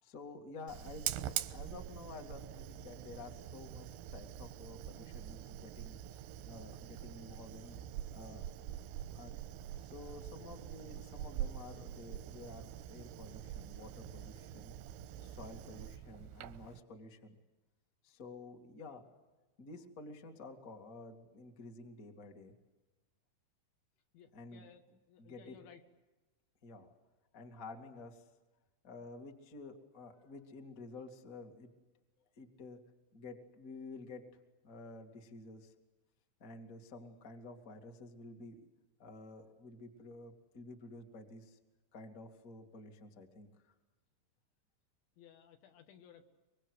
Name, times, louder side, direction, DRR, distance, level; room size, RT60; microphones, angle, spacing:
voice 1, 0.0-1.0 1.3-7.8 8.1-8.5 9.1-9.4 9.8-14.8 15.2-17.4 18.0-19.0 19.6-22.5 24.3-24.7 25.2-25.6 26.6-26.9 27.3-28.3 28.8-31.7 32.4-32.8 33.1-34.2 34.6-35.7 36.4-38.7 39.0-41.6 41.9-43.7, left 3 dB, 35° left, 3 dB, 1.3 m, -51 dB
Fire, 0.7-16.8, right 12 dB, 85° right, 3.6 m, -44 dB
voice 2, 24.1-25.8 45.2-46.2, left 8 dB, 70° left, 6 dB, 4.0 m, -59 dB
24.5 x 24.5 x 8.0 m, 1.1 s
omnidirectional pair, 5.6 m